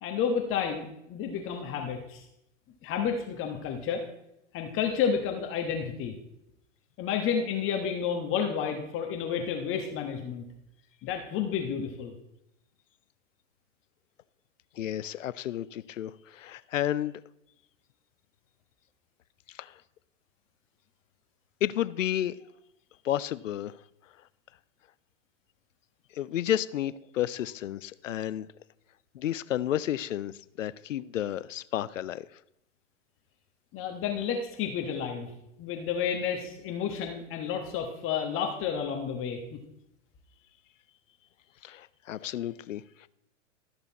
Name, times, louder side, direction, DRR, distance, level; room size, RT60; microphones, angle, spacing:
voice 1, 0.0-2.2 2.8-4.0 4.5-6.1 7.0-10.4 11.0-12.1 33.7-35.3 35.6-39.6, left 7 dB, 35° left, 1.3 m, -31 dB
voice 2, 14.8-17.2 19.5-19.8 21.6-22.4 23.0-23.8 26.1-28.5 29.1-32.3 41.6-43.1, left 12 dB, 80° left, 0.5 m, -32 dB
13.0 x 6.8 x 4.1 m
hypercardioid pair, 105°, 38 cm